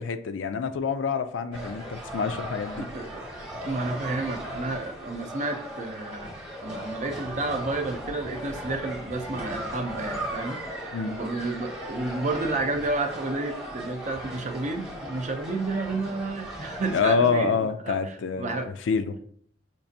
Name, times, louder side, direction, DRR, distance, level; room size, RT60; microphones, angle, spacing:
voice 1, 0.0-2.9 10.9-11.2 16.9-19.2, left 5 dB, 85° left, 11 dB, 0.4 m, -27 dB
sound 1, 1.5-17.0, right 1 dB, 5° right, 1.0 m, -37 dB
voice 2, 2.8-3.2 3.7-6.3 6.6-18.7, right 2 dB, 40° right, 5 dB, 0.5 m, -31 dB
5.9 x 2.5 x 2.6 m, 0.62 s
head